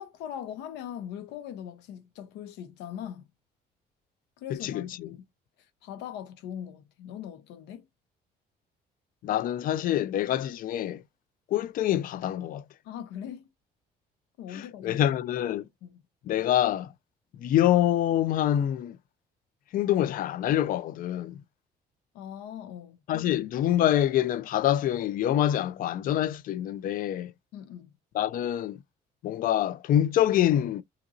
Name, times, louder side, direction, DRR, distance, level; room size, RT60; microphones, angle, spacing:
voice 1, 0.0-3.3 4.4-5.2 5.8-7.8 12.8-13.4 14.4-15.0 15.8-16.0 22.1-23.0 27.5-27.9, left 9 dB, 90° left, 0.7 m, -40 dB
voice 2, 4.5-5.2 9.2-11.0 11.5-12.6 14.5-15.7 16.2-16.9 17.4-19.0 19.7-21.4 23.1-27.3 28.1-28.8 29.2-30.8, left 11 dB, 55° left, 0.4 m, -26 dB
2.8 x 2.5 x 2.4 m
cardioid pair, 110°, 17 cm